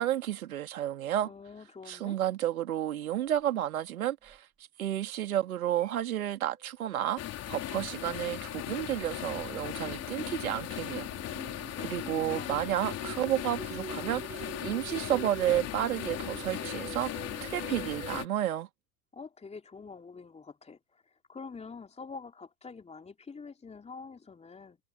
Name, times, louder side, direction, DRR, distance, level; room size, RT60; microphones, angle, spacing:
voice 1, 0.0-1.3 1.9-4.4 4.8-7.2 7.5-11.0 11.8-17.1 17.4-18.7, right 12 dB, 70° right, 2.7 m, -31 dB
voice 2, 1.2-2.2 11.7-12.6 19.1-21.0 21.3-24.8, left 4 dB, 15° left, 3.3 m, -46 dB
sound 1, 3.1-3.6 4.3-4.4 5.8-6.2 6.4-7.4 8.7-18.2, right 5 dB, 15° right, 2.0 m, -47 dB
sound 2, 7.2-18.3, left 12 dB, 35° left, 4.2 m, -38 dB
figure-of-eight pair, 85°, 44 cm